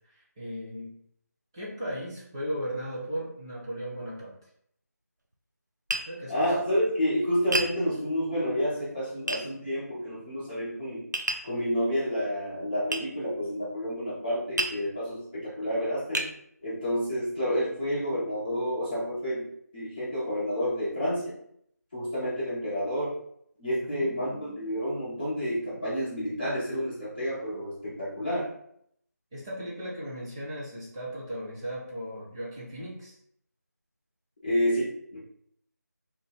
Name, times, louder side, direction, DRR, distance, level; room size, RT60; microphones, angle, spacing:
voice 1, 0.1-0.9 1.5-4.4 6.1-6.5 23.9-24.6 29.3-33.1, equal, 15° right, -7 dB, 0.8 m, -37 dB
Tap, 5.9-6.1 7.5-7.8 9.3-9.4 11.1-11.5 12.9-13.1 14.6-14.8 15.5-15.6 16.2-16.3, right 2 dB, 85° right, 0.6 m, -29 dB
voice 2, 6.3-11.0 11.4-16.3 16.6-19.5 19.7-21.3 21.9-23.2 23.6-28.5 34.4-35.2, equal, 5° left, -16 dB, 0.3 m, -29 dB
2.6 x 2.6 x 4.2 m, 0.69 s
figure-of-eight pair, 165°, 9 cm